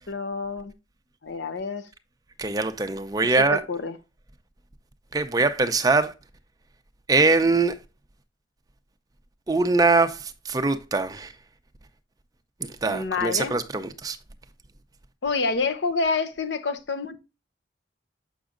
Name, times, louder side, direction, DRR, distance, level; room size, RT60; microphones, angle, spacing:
voice 1, 0.1-0.7 1.2-1.9 3.4-4.0 12.9-13.6 15.2-17.2, left 4 dB, 75° left, 0.8 m, -28 dB
voice 2, 2.4-3.6 5.1-6.1 7.1-7.8 9.5-11.3 12.6-14.2, right 3 dB, 20° right, 0.5 m, -22 dB
7.0 x 6.2 x 2.5 m
head